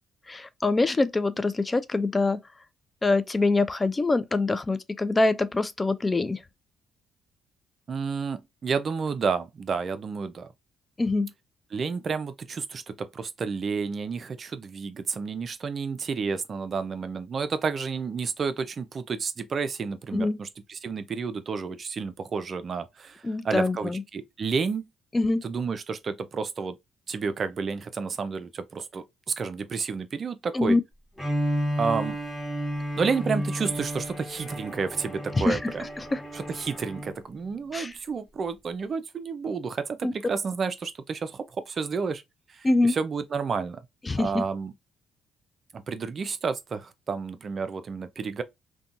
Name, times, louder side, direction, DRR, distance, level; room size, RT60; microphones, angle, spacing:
voice 1, 0.3-2.4 3.0-6.4 11.0-11.3 20.1-20.4 23.2-24.0 25.1-25.4 30.5-30.8 35.3-35.7 36.0-36.2 37.7-37.9 40.0-40.1 42.6-43.0 44.1-44.4, left 2 dB, 25° left, 0.3 m, -24 dB
voice 2, 7.9-10.5 11.7-24.8 25.4-26.8 27.1-30.8 31.8-32.2 33.0-35.8 36.3-42.2 42.5-43.9 44.2-44.7 45.7-48.4, right 5 dB, 50° right, 0.4 m, -31 dB
Bowed string instrument, 31.2-37.2, equal, 10° left, 1.3 m, -32 dB
2.6 x 2.2 x 2.5 m
supercardioid pair, 65°, 0 cm